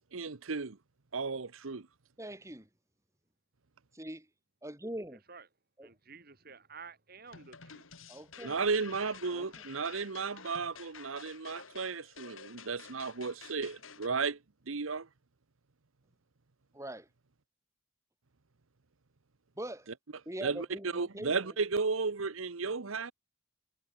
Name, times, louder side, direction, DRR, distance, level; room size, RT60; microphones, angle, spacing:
voice 1, 0.1-0.8 1.1-1.9 8.4-14.4 14.7-15.1 20.4-20.7 20.9-23.1, right 4 dB, 90° right, 1.0 m, -34 dB
voice 2, 2.2-2.7 3.9-4.3 4.6-5.2 5.8-5.9 8.1-8.5 9.3-9.6 16.7-17.1 19.6-19.9 20.3-21.5 22.6-22.7, right 1 dB, 15° right, 5.2 m, -43 dB
voice 3, 5.8-7.9 8.3-8.7 9.9-10.1, right 5 dB, 50° right, 3.5 m, -52 dB
sound 1, 7.3-14.1, left 6 dB, 85° left, 3.3 m, -51 dB
head